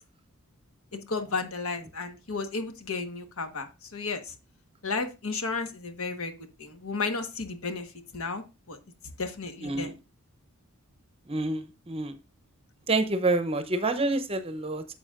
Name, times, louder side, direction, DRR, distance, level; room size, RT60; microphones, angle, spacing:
voice 1, 0.9-4.3 4.8-8.8 9.2-9.9, left 4 dB, 75° left, 7 dB, 1.3 m, -33 dB
voice 2, 11.3-12.2 12.9-15.0, right 2 dB, 25° right, 10 dB, 0.7 m, -28 dB
9.7 x 7.0 x 2.5 m, 0.28 s
head